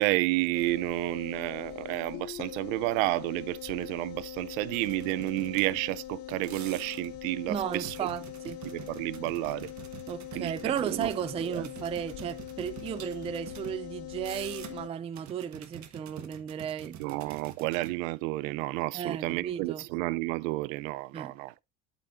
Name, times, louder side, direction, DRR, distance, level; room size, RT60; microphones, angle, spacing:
voice 1, 0.0-8.0 8.6-9.7 10.4-11.1 11.5-11.7 17.0-21.5, right 20 dB, 70° right, 0.6 m, -31 dB
sound 1, 0.5-14.9, left 13 dB, 55° left, 0.9 m, -42 dB
sound 2, 4.7-6.0 6.3-7.2 7.7-13.8 14.1-14.9 15.1-17.9, right 10 dB, 45° right, 1.3 m, -47 dB
voice 2, 7.5-8.6 10.1-17.0 18.9-19.8 21.1-21.3, right 8 dB, 15° right, 0.3 m, -34 dB
11.5 x 5.1 x 2.5 m
hypercardioid pair, 85°, 41 cm